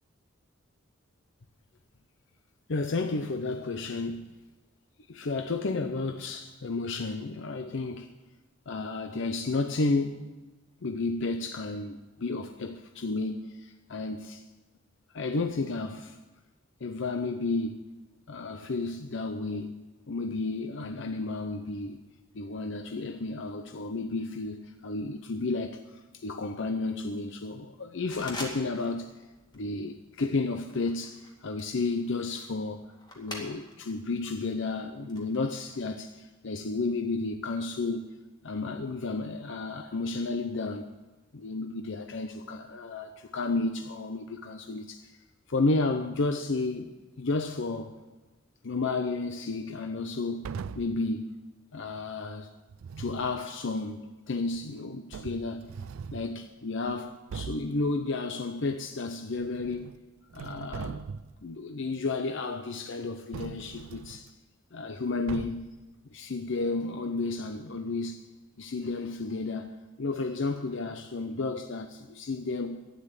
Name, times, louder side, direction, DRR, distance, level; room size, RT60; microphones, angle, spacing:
voice 1, 2.7-4.4 5.1-8.1 8.7-10.2 10.8-14.4 15.1-16.2 16.8-17.8 18.3-19.8 20.1-22.0 22.3-29.1 29.5-32.8 33.2-38.1 38.4-40.9 41.3-45.1 45.5-48.0 48.6-51.3 51.7-52.5 53.0-55.7 56.1-60.0 60.3-61.0 61.4-64.3 64.7-65.7 66.1-68.2 68.6-72.8, left 3 dB, 65° left, 0.7 m, -32 dB
sound 1, 28.1-29.0 29.3-29.7 30.2-33.9 34.3-35.8, left 1 dB, 20° left, 2.2 m, -45 dB
sound 2, 50.4-51.0 52.7-53.3 54.6-54.7 55.1-56.3 56.8-57.0 57.3-57.8 59.3-60.0 60.3-61.4 63.3-64.3 65.3-65.8, right 6 dB, 90° right, 0.4 m, -40 dB
12.0 x 9.8 x 8.2 m
head